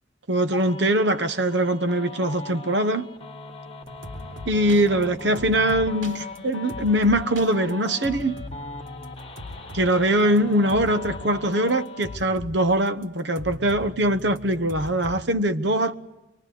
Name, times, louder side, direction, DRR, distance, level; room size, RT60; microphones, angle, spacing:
voice 1, 0.3-3.1 4.5-8.4 9.7-15.9, right 1 dB, 60° right, 1.1 m, -22 dB
sound 1, 0.5-12.2, left 3 dB, 30° left, 1.7 m, -40 dB
sound 2, 3.8-11.3 11.5-12.6 12.9-13.0 13.4-15.2, left 1 dB, 85° right, 3.7 m, -40 dB
24.5 x 23.5 x 9.3 m
head